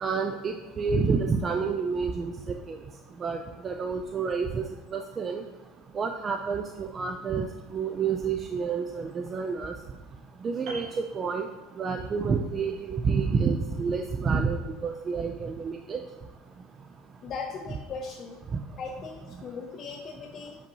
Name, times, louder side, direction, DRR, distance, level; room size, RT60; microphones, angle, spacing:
voice 1, 0.0-2.3 2.7-2.8 3.2-3.4 3.6-4.6 4.9-5.4 6.0-7.5 7.7-9.7 10.4-11.5 11.8-16.0, right 5 dB, 25° right, 5 dB, 0.3 m, -29 dB
Piano, 10.7-12.1 12.4-12.6, right 3 dB, 50° right, 1.4 m, -44 dB
voice 2, 17.2-18.4 18.8-20.6, left 5 dB, 40° left, 0 dB, 0.5 m, -38 dB
6.6 x 5.2 x 2.8 m, 1.2 s
supercardioid pair, 130°, 0 cm